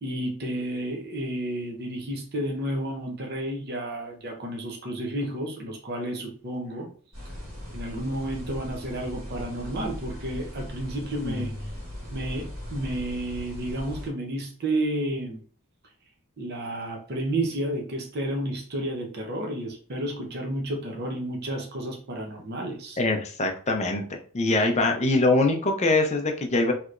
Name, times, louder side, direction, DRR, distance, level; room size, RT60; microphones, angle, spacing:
voice 1, 0.0-6.9 7.7-11.5 12.1-15.4 16.4-23.0, right 1 dB, 45° right, 1 dB, 0.6 m, -31 dB
sound 1, 7.1-14.1, equal, 70° right, 1.5 m, -39 dB
voice 2, 23.0-26.7, left 2 dB, 30° left, 4 dB, 0.5 m, -23 dB
3.2 x 2.9 x 2.5 m, 0.43 s
head